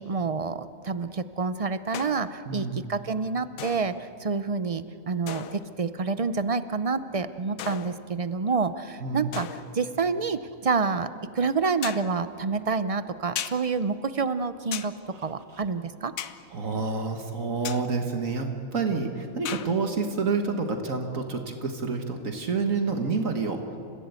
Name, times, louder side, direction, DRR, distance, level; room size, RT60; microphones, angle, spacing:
voice 1, 0.0-14.9 15.2-16.1, right 4 dB, 45° right, 12 dB, 0.4 m, -28 dB
sound 1, 1.9-2.4 3.6-4.2 5.3-5.8 7.6-8.3 9.3-9.9 11.8-12.2 13.4-13.6 14.7-14.9 16.2-16.5 17.6-17.9 19.4-19.7, left 9 dB, 75° left, 1.2 m, -37 dB
voice 2, 2.5-2.9 9.0-9.3 15.5-15.6 16.5-23.6, right 4 dB, 65° right, 5 dB, 1.9 m, -28 dB
29.5 x 15.5 x 8.2 m, 2.6 s
omnidirectional pair, 1.5 m